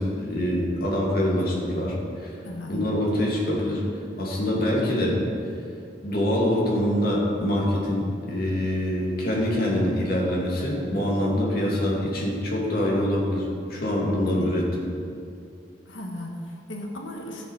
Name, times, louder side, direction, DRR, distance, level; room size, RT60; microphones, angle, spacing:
voice 1, 0.0-1.9 2.2-2.3 2.7-3.8 4.2-5.2 6.0-14.7, left 1 dB, 55° left, -4 dB, 2.5 m, -25 dB
voice 2, 2.4-2.8 11.6-11.9 14.3-14.5 15.9-17.5, left 1 dB, 85° left, 0 dB, 1.6 m, -36 dB
13.5 x 7.2 x 4.9 m, 2.5 s
head